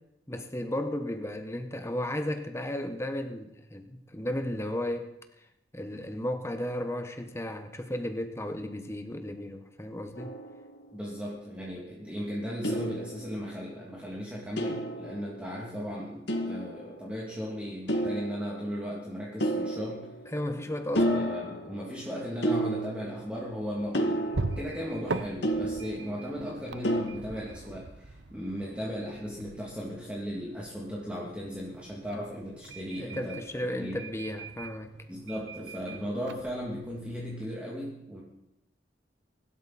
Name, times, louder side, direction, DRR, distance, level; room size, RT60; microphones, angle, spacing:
voice 1, 0.3-5.1 5.7-10.3 20.3-21.2 33.0-34.9, left 1 dB, 15° left, 7 dB, 1.3 m, -34 dB
sound 1, 10.1-11.1 12.6-13.7 14.6-15.8 16.3-17.2 17.9-18.9 19.4-20.6 20.9-22.0 22.4-23.4 23.9-26.3 26.8-27.0, right 1 dB, 70° left, 2.3 m, -31 dB
voice 2, 10.9-20.0 21.0-33.4 33.7-34.0 35.1-38.2, equal, 5° right, -5 dB, 2.8 m, -36 dB
sound 2, 23.1-37.5, right 3 dB, 75° right, 1.0 m, -42 dB
24.0 x 12.5 x 4.3 m, 0.86 s
head